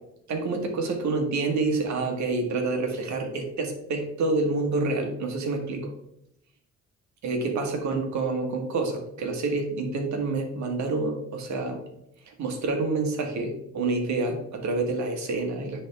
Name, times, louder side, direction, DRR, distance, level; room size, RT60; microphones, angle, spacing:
voice 1, 0.3-5.9 7.2-11.8 12.4-15.8, right 3 dB, 70° right, 3 dB, 1.6 m, -28 dB
10.0 x 3.6 x 3.5 m, 0.79 s
cardioid pair, 90°, 30 cm